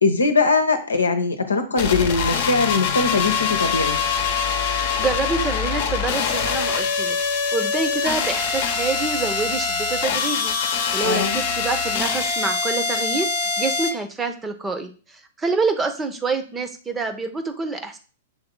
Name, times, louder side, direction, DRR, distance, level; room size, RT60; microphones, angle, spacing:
voice 1, 0.0-4.0 11.0-11.4, left 4 dB, 80° left, 6 dB, 0.9 m, -21 dB
sound 1, 1.8-13.9, left 5 dB, 55° left, 0.9 m, -24 dB
voice 2, 5.0-7.2 7.5-10.5 10.9-18.0, right 4 dB, 15° right, 8 dB, 0.8 m, -27 dB
6.9 x 3.7 x 3.8 m, 0.37 s
figure-of-eight pair, 105°, 0 cm